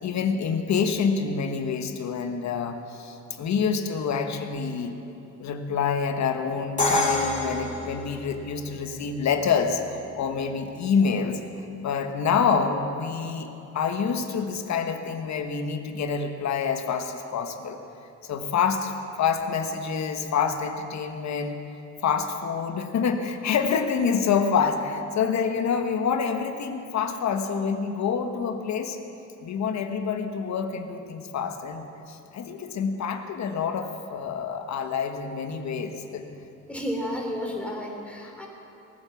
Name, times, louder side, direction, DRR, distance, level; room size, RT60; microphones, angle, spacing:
voice 1, 0.0-4.9 5.4-11.4 11.8-17.8 18.2-21.6 22.0-29.0 29.4-36.3, left 6 dB, 65° left, 6 dB, 1.4 m, -27 dB
Crash cymbal, 6.8-8.7, left 1 dB, 25° left, 3.1 m, -26 dB
voice 2, 36.7-38.5, equal, 5° left, -1 dB, 3.3 m, -32 dB
18.5 x 9.4 x 7.1 m, 2.8 s
cardioid pair, 90°, 30 cm